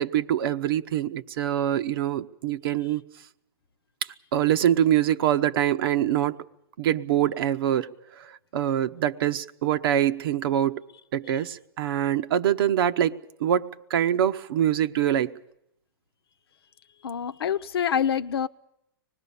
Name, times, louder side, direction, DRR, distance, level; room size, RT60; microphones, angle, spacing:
voice 1, 0.0-3.0 4.3-6.4 6.8-10.8 11.1-15.3, right 10 dB, 70° right, 10 dB, 1.0 m, -24 dB
voice 2, 17.0-18.5, left 8 dB, 80° left, 12 dB, 0.9 m, -26 dB
25.0 x 19.5 x 7.0 m, 0.78 s
hypercardioid pair, 125°, 13 cm